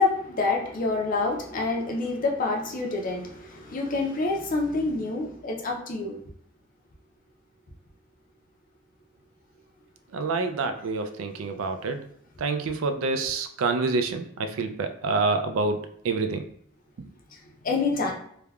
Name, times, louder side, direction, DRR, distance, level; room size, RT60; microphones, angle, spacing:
voice 1, 0.0-6.2 17.6-18.1, left 3 dB, 40° left, 0 dB, 0.5 m, -27 dB
voice 2, 10.1-12.1 12.4-16.5 17.0-17.1, right 3 dB, 80° right, 8 dB, 0.4 m, -27 dB
3.3 x 2.1 x 2.3 m, 0.68 s
head